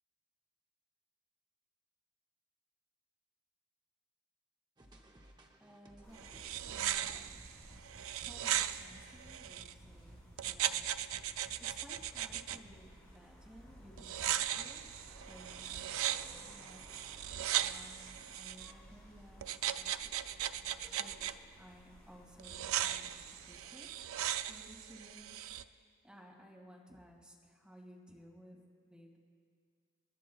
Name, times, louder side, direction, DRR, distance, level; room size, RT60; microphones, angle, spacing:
sound 1, 4.8-12.8, right 1 dB, 20° right, 0.8 m, -58 dB
voice 1, 5.6-6.3 6.7-7.4 8.2-10.2 10.5-10.9 11.6-14.9 15.3-16.9 17.6-23.1 23.5-23.9 24.5-25.4 26.0-29.2, equal, 5° right, -3 dB, 2.1 m, -58 dB
sound 2, 6.0-23.7, equal, 15° left, 2.7 m, -59 dB
sound 3, 6.1-9.7 10.4-12.6 14.0-18.7 19.4-21.3 22.4-25.6, right 11 dB, 90° right, 0.4 m, -38 dB
29.5 x 11.0 x 2.3 m, 2.2 s
head